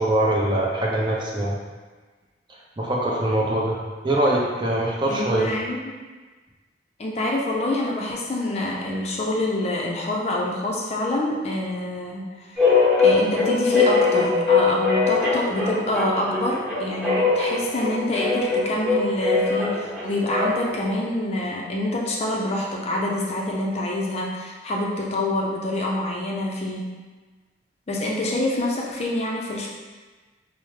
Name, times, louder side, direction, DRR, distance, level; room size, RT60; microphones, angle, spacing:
voice 1, 0.0-1.6 2.8-3.8 4.0-5.5, right 1 dB, 25° right, -4 dB, 0.5 m, -22 dB
voice 2, 5.1-5.9 7.0-26.8 27.9-29.7, left 1 dB, 35° left, -2 dB, 0.4 m, -26 dB
sound 1, 12.6-20.8, left 4 dB, 5° right, 1.0 m, -21 dB
4.5 x 2.0 x 3.1 m, 1.3 s
head